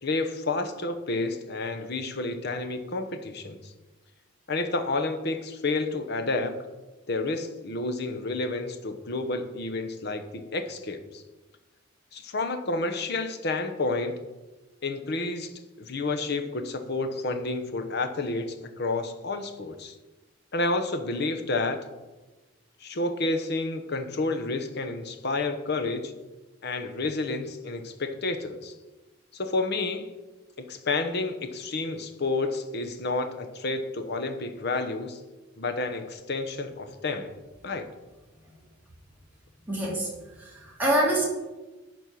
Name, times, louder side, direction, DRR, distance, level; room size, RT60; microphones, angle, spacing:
voice 1, 0.0-3.7 4.5-6.6 7.1-11.2 12.1-14.2 14.8-15.5 15.8-19.9 20.5-21.8 22.8-26.1 26.6-28.7 29.3-30.1 30.6-35.2 35.6-37.3 37.6-37.9, left 3 dB, 55° left, 8 dB, 0.9 m, -30 dB
voice 2, 39.7-40.1 40.3-41.2, right 1 dB, 10° right, -5 dB, 2.7 m, -25 dB
11.0 x 4.4 x 6.3 m, 1.1 s
head